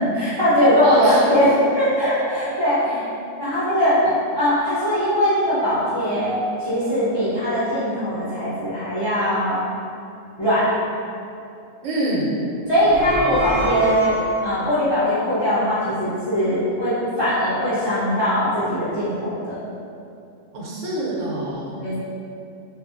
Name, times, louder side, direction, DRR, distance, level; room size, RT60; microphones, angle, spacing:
voice 1, 0.0-1.5 1.7-3.0 3.4-4.0 4.3-9.6 10.4-10.7 12.7-14.1 14.4-19.6 21.7-21.9, equal, 40° left, -12 dB, 0.3 m, -20 dB
voice 2, 0.8-1.2 2.8-2.9 11.8-12.4 20.5-21.7, right 1 dB, 85° right, -5 dB, 1.0 m, -26 dB
sound 1, 12.7-14.6, equal, 35° right, 0.4 m, -27 dB
2.6 x 2.3 x 2.4 m, 2.6 s
omnidirectional pair, 1.3 m